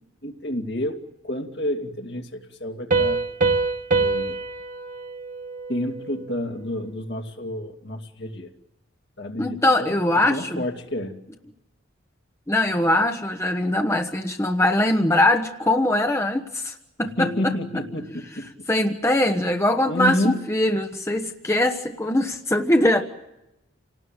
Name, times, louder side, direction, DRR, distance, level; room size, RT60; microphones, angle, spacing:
voice 1, 0.2-3.2 4.0-4.4 5.7-8.5 9.2-9.9 10.3-11.2 17.2-18.7 19.9-20.4, left 1 dB, 60° left, 3 dB, 2.6 m, -29 dB
Piano, 2.9-6.3, right 3 dB, 40° right, 1.3 m, -25 dB
voice 2, 9.4-10.6 12.5-17.5 18.7-23.0, left 1 dB, 15° left, 4 dB, 1.1 m, -22 dB
28.5 x 19.0 x 9.1 m, 0.93 s
head